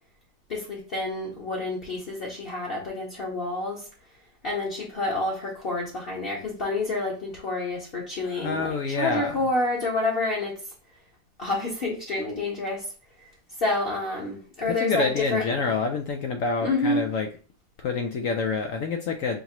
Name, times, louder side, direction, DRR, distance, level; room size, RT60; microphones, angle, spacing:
voice 1, 0.5-3.9 4.4-10.5 11.4-12.9 13.2-13.3 13.6-15.7 16.6-17.0, left 2 dB, 40° left, -4 dB, 1.1 m, -28 dB
voice 2, 8.3-9.3 14.8-17.3 17.8-19.4, left 4 dB, 70° left, 5 dB, 0.8 m, -27 dB
5.6 x 2.9 x 3.0 m, 0.38 s
omnidirectional pair, 1.8 m